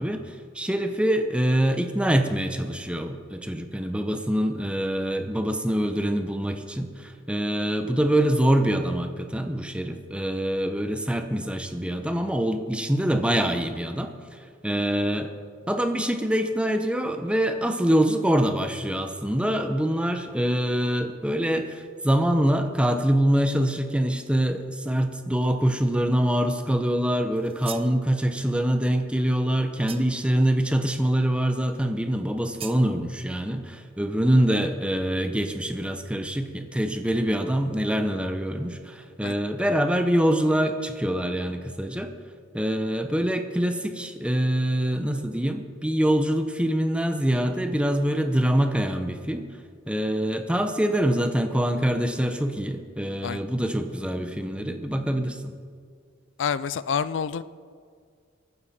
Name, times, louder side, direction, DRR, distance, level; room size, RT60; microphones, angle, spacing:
voice 1, 0.0-14.1 14.6-15.3 15.7-42.1 42.5-49.4 49.9-55.6, right 1 dB, 5° right, 6 dB, 0.9 m, -25 dB
sound 1, 27.4-28.0 29.9-30.3 32.6-32.9, right 9 dB, 30° right, 0.5 m, -40 dB
voice 2, 56.4-57.4, left 6 dB, 65° left, 16 dB, 0.4 m, -27 dB
22.0 x 9.6 x 4.3 m, 2.1 s
head